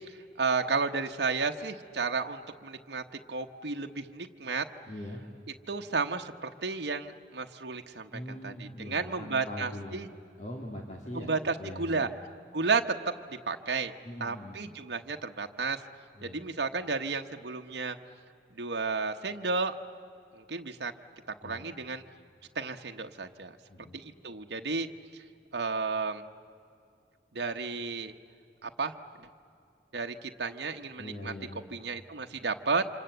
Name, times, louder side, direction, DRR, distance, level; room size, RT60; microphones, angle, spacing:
voice 1, 0.4-4.7 5.7-10.1 11.1-12.1 12.5-13.9 14.2-15.8 16.2-18.0 18.6-19.7 20.4-20.9 21.3-22.0 22.5-23.6 23.9-24.9 25.1-25.2 25.5-26.2 27.3-28.1 28.6-28.9 29.9-31.3 31.7-32.8, right 4 dB, 70° right, 4 dB, 1.1 m, -32 dB
voice 2, 4.9-5.2 8.1-10.0 10.4-11.3 11.6-12.2 14.0-14.6 16.1-16.4 21.4-21.7 23.7-24.0 31.0-31.6, left 1 dB, 40° left, 0 dB, 2.5 m, -41 dB
28.0 x 26.5 x 8.1 m, 2.5 s
head